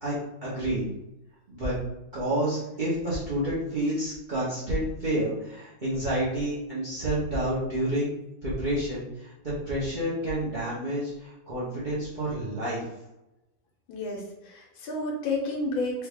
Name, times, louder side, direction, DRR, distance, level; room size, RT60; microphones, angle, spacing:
voice 1, 0.0-0.9 1.5-1.8 2.1-8.1 8.4-12.8, right 1 dB, 50° right, -8 dB, 0.5 m, -29 dB
voice 2, 13.9-16.1, left 2 dB, 85° left, 0 dB, 1.6 m, -31 dB
3.5 x 2.4 x 3.4 m, 0.93 s
omnidirectional pair, 2.2 m